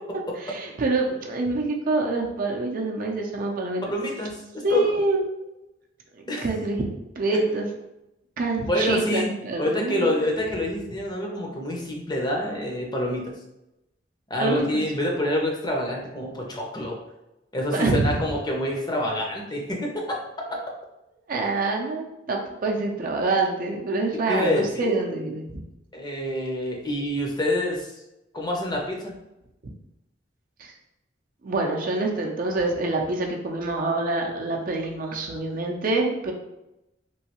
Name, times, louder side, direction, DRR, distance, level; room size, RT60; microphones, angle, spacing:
voice 1, 0.4-3.8 4.6-5.2 6.1-6.8 7.2-7.7 8.4-10.1 14.4-14.6 17.7-18.2 21.3-25.6 30.6-30.7 31.4-36.3, right 2 dB, 50° right, 1 dB, 0.5 m, -26 dB
voice 2, 3.9-4.4 4.7-4.9 6.3-6.5 7.3-7.4 8.7-9.3 9.6-13.3 14.3-17.0 17.5-20.0 24.3-24.9 25.9-27.9 28.3-29.1, left 1 dB, 25° left, -1 dB, 0.6 m, -27 dB
3.1 x 2.7 x 2.9 m, 0.91 s
head